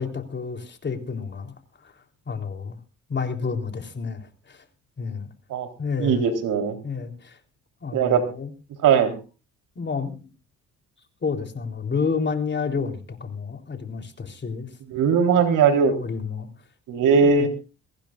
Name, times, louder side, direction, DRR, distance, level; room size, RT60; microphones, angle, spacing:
voice 1, 0.0-1.5 1.8-2.8 3.1-4.6 5.0-5.3 5.8-6.3 6.8-7.4 7.8-8.5 9.8-10.3 11.2-14.7 15.8-16.5 17.1-17.5, left 5 dB, 35° left, 5 dB, 3.5 m, -30 dB
voice 2, 6.0-6.8 7.9-8.2 8.8-9.2 14.9-15.9 16.9-17.5, right 6 dB, 85° right, 5 dB, 3.8 m, -19 dB
23.5 x 16.5 x 2.5 m, 0.33 s
cardioid pair, 110°, 31 cm